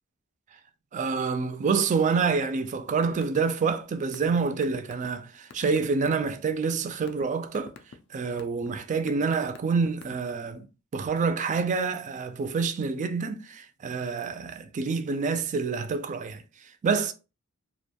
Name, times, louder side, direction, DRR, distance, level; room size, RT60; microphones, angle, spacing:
voice 1, 0.9-7.7 8.1-10.7 10.9-17.1, right 5 dB, 35° right, 0.3 m, -27 dB
sound 1, 2.9-3.4 3.7-6.3 6.8-7.2 7.5-7.9 8.4-8.7 9.1-10.4, left 6 dB, 60° left, 0.4 m, -44 dB
2.4 x 2.2 x 2.7 m
head